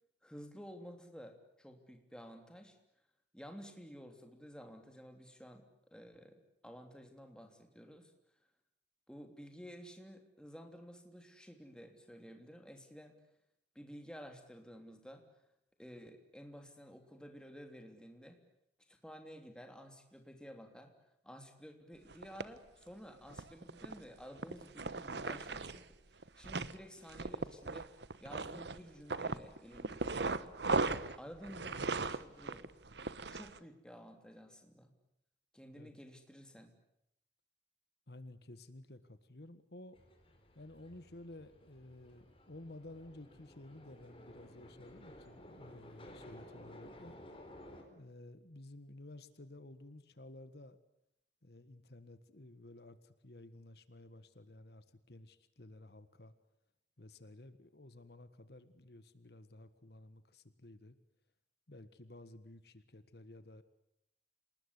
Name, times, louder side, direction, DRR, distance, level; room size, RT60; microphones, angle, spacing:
voice 1, 0.2-2.8 3.3-5.6 5.9-8.1 9.1-13.1 13.7-15.2 15.8-18.4 18.9-20.9 21.2-27.9 28.2-30.5 31.2-32.7 33.2-34.9 35.5-36.7, equal, 5° left, 5 dB, 3.1 m, -52 dB
sound 1, 22.1-22.4 23.3-24.0 24.4-25.8 26.2-26.8 27.1-28.8 29.1-33.6, right 3 dB, 80° right, 1.1 m, -37 dB
voice 2, 38.1-40.0 40.5-47.1 47.9-50.8 51.4-56.3 57.0-60.9 61.7-63.6, left 1 dB, 70° left, 12 dB, 1.6 m, -54 dB
sound 2, 39.9-47.8, left 1 dB, 30° left, 4.5 m, -55 dB
27.5 x 20.0 x 9.6 m, 0.79 s
head